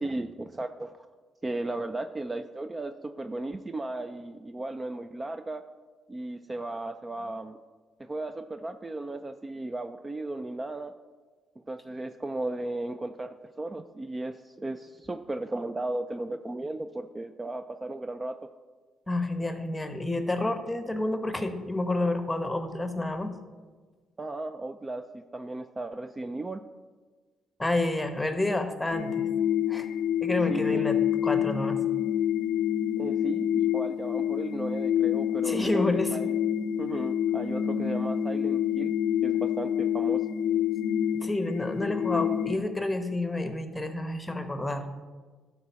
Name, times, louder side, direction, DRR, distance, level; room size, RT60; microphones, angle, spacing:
voice 1, 0.0-1.1 1.4-5.6 6.1-7.6 8.0-10.9 11.6-18.5 24.2-26.6 30.5-30.8 33.0-36.3 36.8-38.9 39.2-40.3, right 2 dB, 25° right, 9 dB, 0.4 m, -35 dB
voice 2, 19.1-23.3 27.6-29.3 29.7-29.9 30.2-30.9 31.2-31.8 35.4-36.2 41.2-44.8, left 2 dB, 10° left, 7 dB, 1.0 m, -29 dB
sound 1, 28.9-42.6, left 9 dB, 75° left, 0.5 m, -27 dB
12.0 x 4.2 x 5.7 m, 1.4 s
cardioid pair, 90°, 0 cm